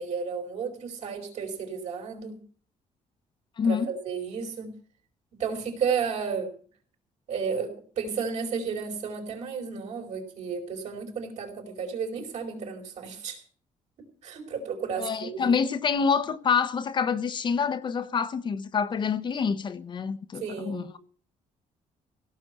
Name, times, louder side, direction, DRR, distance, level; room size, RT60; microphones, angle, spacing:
voice 1, 0.0-2.4 3.6-4.8 5.3-6.5 7.3-13.4 14.2-15.5 20.3-21.0, right 6 dB, 60° right, 5.1 m, -33 dB
voice 2, 3.6-3.9 15.0-21.0, left 6 dB, 35° left, 0.9 m, -27 dB
17.0 x 6.2 x 9.5 m
cardioid pair, 150°, 13 cm